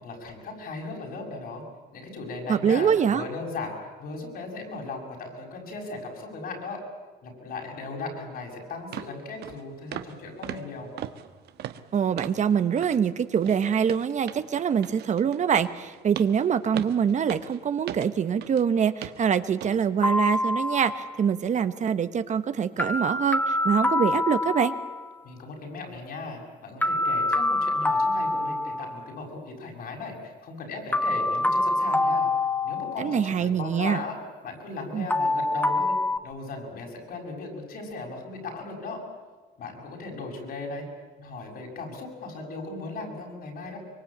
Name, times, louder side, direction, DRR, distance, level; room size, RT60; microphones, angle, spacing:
voice 1, 0.0-1.6 1.9-3.7 4.0-6.8 7.2-10.9 25.2-32.3 32.6-34.2 34.4-35.9 36.2-39.0 39.6-40.9 41.2-43.8, left 3 dB, 65° left, 1 dB, 7.1 m, -37 dB
voice 2, 2.5-3.2 11.9-24.7 33.0-34.0 34.9-35.1, right 7 dB, 45° right, 11 dB, 1.2 m, -24 dB
sound 1, 8.3-8.4 8.9-9.1 9.4-9.6 9.9-10.2 10.4-12.5 12.8-13.0 13.4-18.7 19.0-19.2 19.6-19.8 20.2-20.4, right 11 dB, 75° right, 1.3 m, -39 dB
sound 2, 20.0-21.2 22.8-25.1 26.8-29.1 30.9-33.3 35.1-36.2, left 2 dB, 10° left, 1.3 m, -26 dB
24.0 x 23.5 x 8.8 m, 1.4 s
cardioid pair, 115°, 17 cm